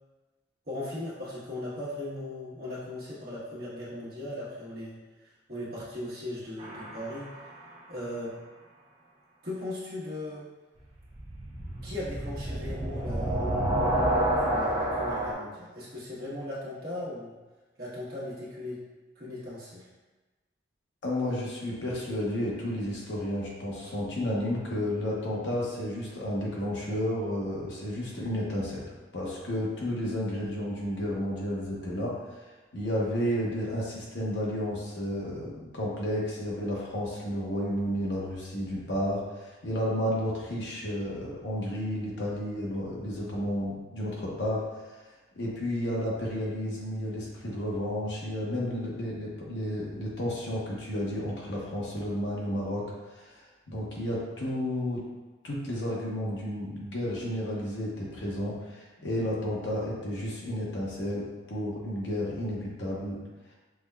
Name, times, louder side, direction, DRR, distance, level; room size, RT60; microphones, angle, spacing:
voice 1, 0.7-7.3 7.9-8.3 9.4-10.5 11.8-13.7 14.4-17.4 17.8-18.8 19.1-19.9, left 1 dB, 50° right, -8 dB, 1.2 m, -38 dB
sound 1, 6.6-7.5 11.0-15.3, right 1 dB, 30° right, 0.6 m, -29 dB
voice 2, 21.0-28.8 29.1-32.1 32.7-44.6 45.3-52.9 53.2-53.4 53.7-55.0 55.4-63.2, equal, 70° left, -4 dB, 0.9 m, -32 dB
5.8 x 2.2 x 2.2 m, 1.2 s
head